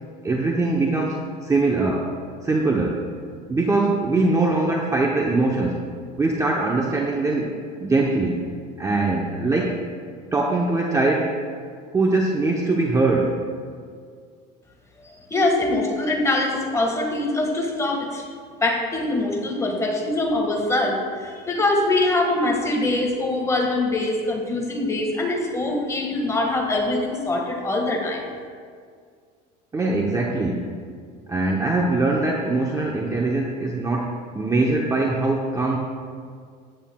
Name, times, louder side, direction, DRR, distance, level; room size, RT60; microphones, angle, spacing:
voice 1, 0.2-2.1 2.4-3.0 3.5-5.9 6.2-7.6 7.8-8.5 8.8-9.8 10.3-11.4 11.9-13.4 29.7-30.7 31.3-35.8, right 2 dB, 15° right, 0 dB, 0.8 m, -22 dB
voice 2, 15.3-18.3 18.6-28.3, left 2 dB, 15° left, 1 dB, 1.6 m, -23 dB
14.5 x 9.0 x 2.3 m, 2.1 s
supercardioid pair, 125°, 21 cm